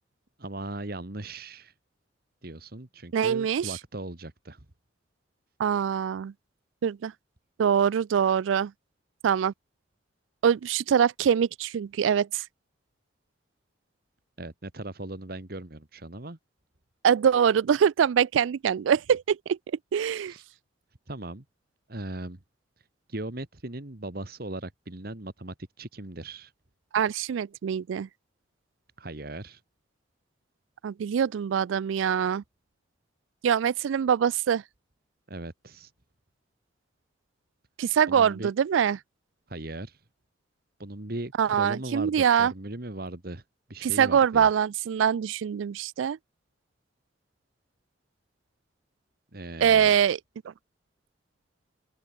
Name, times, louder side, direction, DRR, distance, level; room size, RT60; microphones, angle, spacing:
voice 1, 0.4-1.7 2.4-4.7 14.4-16.4 20.3-20.4 21.1-21.4 21.9-22.4 23.1-26.5 29.0-29.6 35.3-35.9 38.1-38.5 39.5-40.0 40.8-43.4 43.7-44.5 49.3-49.9, right 2 dB, 50° right, 1.8 m, -38 dB
voice 2, 3.1-3.7 5.6-6.3 6.8-7.1 7.6-8.7 9.2-9.5 10.4-12.4 17.0-19.6 19.9-20.3 26.9-28.1 30.8-32.4 33.4-34.6 37.8-39.0 41.4-42.5 43.8-46.2 49.6-50.2, right 8 dB, 85° right, 0.3 m, -24 dB
head